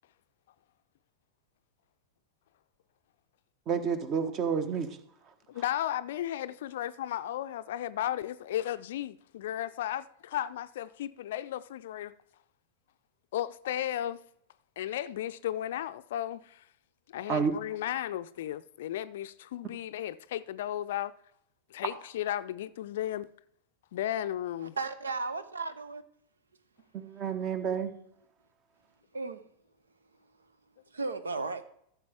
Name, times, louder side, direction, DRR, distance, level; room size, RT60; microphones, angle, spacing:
voice 1, 3.7-4.9 17.3-17.5 26.9-27.9, right 6 dB, 35° right, 1.2 m, -29 dB
voice 2, 5.5-12.1 13.3-14.2 14.8-16.6 17.1-21.1 21.7-23.3 23.9-24.8, left 12 dB, 55° left, 0.4 m, -34 dB
voice 3, 24.6-26.0 29.1-29.4 30.9-31.6, right 3 dB, 75° right, 0.8 m, -35 dB
14.5 x 7.3 x 3.5 m
figure-of-eight pair, 90°, 0 cm